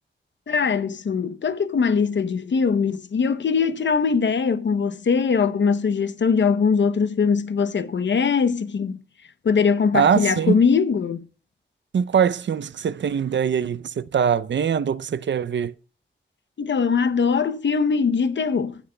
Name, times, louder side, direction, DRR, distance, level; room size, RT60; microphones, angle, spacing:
voice 1, 0.5-9.0 9.4-11.2 16.6-18.8, left 5 dB, 70° left, 0.8 m, -21 dB
voice 2, 9.9-10.6 11.9-15.7, right 7 dB, 70° right, 0.5 m, -22 dB
21.0 x 7.2 x 2.2 m
cardioid pair, 50°, 20 cm